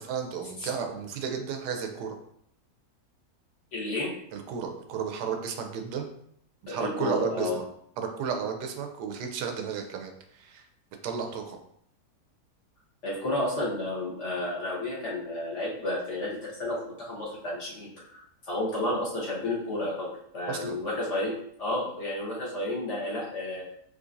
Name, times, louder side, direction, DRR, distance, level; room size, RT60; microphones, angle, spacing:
voice 1, 0.0-2.2 4.3-6.1 6.6-7.6 8.0-10.6 11.0-11.6 20.5-20.8, right 6 dB, 80° right, 5 dB, 1.2 m, -33 dB
voice 2, 3.7-4.1 6.7-7.6 13.0-18.2 18.5-21.3 21.6-23.6, left 1 dB, 50° left, -5 dB, 1.3 m, -31 dB
3.8 x 3.1 x 2.5 m, 0.69 s
omnidirectional pair, 1.8 m